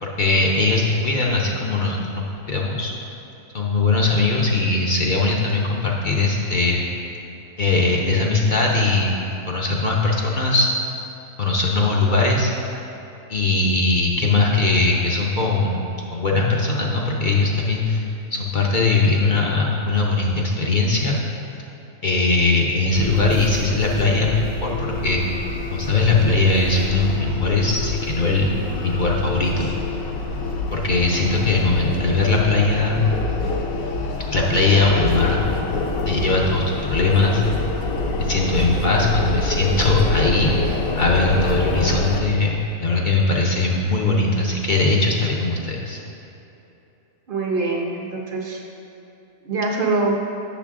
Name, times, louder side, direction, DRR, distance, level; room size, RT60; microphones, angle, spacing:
voice 1, 0.0-2.9 3.5-6.8 7.6-9.1 9.5-10.7 11.4-12.5 13.3-21.2 22.0-25.4 25.7-28.5 28.8-29.7 30.7-33.0 34.3-35.4 36.1-37.4 38.2-46.0, left 3 dB, 50° left, -2 dB, 0.6 m, -20 dB
sound 1, 22.9-42.2, left 2 dB, 70° left, 1.1 m, -26 dB
voice 2, 47.3-48.6 49.4-50.2, right 3 dB, 45° right, -1 dB, 0.8 m, -23 dB
8.1 x 6.5 x 3.6 m, 2.9 s
omnidirectional pair, 1.6 m